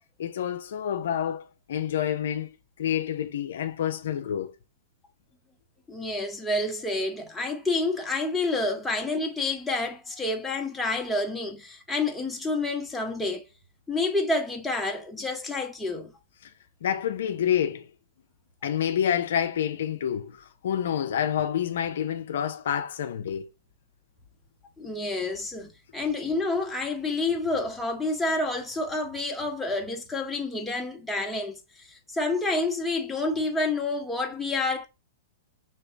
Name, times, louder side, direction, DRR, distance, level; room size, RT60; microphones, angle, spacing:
voice 1, 0.2-1.4 1.7-2.5 2.8-4.5 16.8-17.8 18.6-23.4, left 9 dB, 70° left, 0.5 m, -28 dB
voice 2, 5.9-13.5 13.9-16.1 24.8-34.8, left 2 dB, 5° left, 1.0 m, -29 dB
3.1 x 2.9 x 4.4 m
hypercardioid pair, 120°, 0 cm